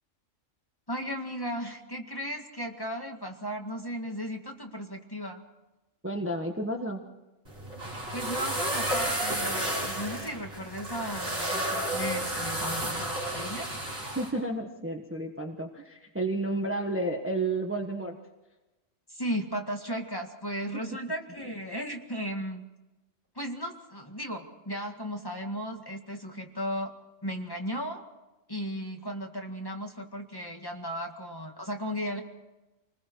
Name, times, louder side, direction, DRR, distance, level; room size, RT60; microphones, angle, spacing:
voice 1, 0.9-5.4 8.1-13.7 19.1-22.6 23.4-26.9 27.2-28.0 28.5-32.2, equal, 15° left, 2 dB, 1.9 m, -35 dB
voice 2, 6.0-7.0 14.1-18.2, right 2 dB, 10° right, 2 dB, 1.3 m, -31 dB
sound 1, 7.4-14.3, right 1 dB, 50° right, 5.8 m, -32 dB
27.5 x 20.0 x 4.7 m, 1.1 s
omnidirectional pair, 1.3 m